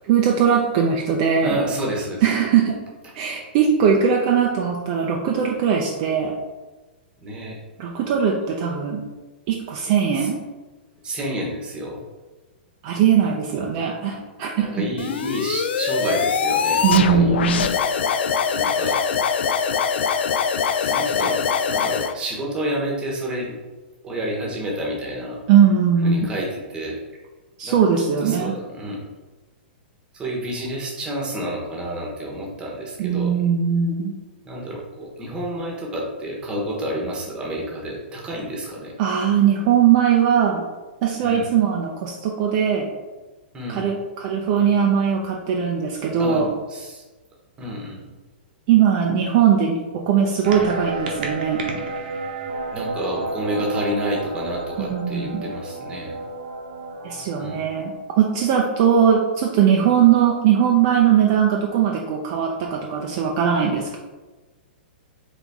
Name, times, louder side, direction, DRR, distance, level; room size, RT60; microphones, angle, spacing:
voice 1, 0.1-1.6 2.2-2.8 3.1-6.3 7.8-9.0 9.5-10.4 12.8-14.9 16.8-17.7 25.5-26.3 27.6-28.5 33.0-34.1 39.0-40.6 41.0-42.9 43.7-46.5 48.7-51.6 54.8-55.4 57.0-64.0, right 8 dB, 40° right, 0 dB, 0.5 m, -20 dB
voice 2, 1.4-2.2 7.2-7.6 10.2-10.3 11.0-12.0 14.1-14.2 14.6-17.4 18.5-19.0 20.8-23.5 24.0-25.4 26.0-27.0 27.6-27.8 28.2-29.0 30.1-33.3 34.4-38.9 41.2-41.5 43.5-43.8 46.2-47.0 47.6-48.1 52.7-56.2 57.4-57.6, right 1 dB, 15° right, -2 dB, 1.1 m, -29 dB
sound 1, 15.0-22.1, left 6 dB, 75° left, 0.4 m, -22 dB
sound 2, 50.4-57.9, right 3 dB, 60° right, 0.9 m, -31 dB
4.0 x 3.6 x 3.5 m, 1.2 s
hypercardioid pair, 150°, 6 cm